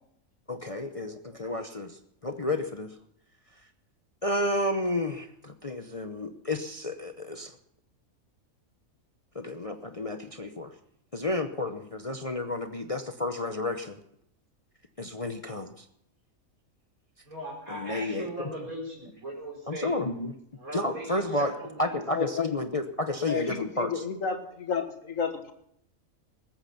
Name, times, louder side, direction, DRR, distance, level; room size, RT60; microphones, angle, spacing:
voice 1, 0.5-2.9 4.2-7.6 9.3-10.7 11.1-14.0 15.0-15.8 17.7-18.5 19.7-20.3 20.7-21.5 21.8-24.0, left 2 dB, 30° left, 6 dB, 0.8 m, -31 dB
voice 2, 17.2-19.9 20.6-22.0, right 1 dB, 80° right, 0 dB, 4.8 m, -39 dB
voice 3, 22.1-22.5 23.3-25.5, left 5 dB, 65° left, 6 dB, 2.0 m, -31 dB
20.0 x 8.9 x 5.8 m, 0.72 s
omnidirectional pair, 1.5 m